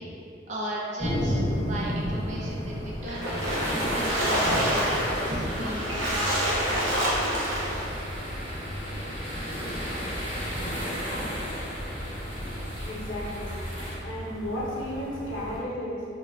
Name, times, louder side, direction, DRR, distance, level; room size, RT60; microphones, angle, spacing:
voice 1, 0.5-1.4 1.7-3.3 3.7-6.4, equal, 40° right, -4 dB, 0.4 m, -35 dB
sound 1, 1.0-15.6, equal, 10° left, 0.9 m, -35 dB
Splash splatter, 3.1-7.9, equal, 85° right, 0.7 m, -27 dB
sound 2, 3.2-14.0, equal, 30° left, 0.5 m, -35 dB
voice 2, 12.8-13.6 14.0-16.1, equal, 85° left, -6 dB, 0.7 m, -33 dB
3.2 x 2.2 x 2.3 m, 2.6 s
head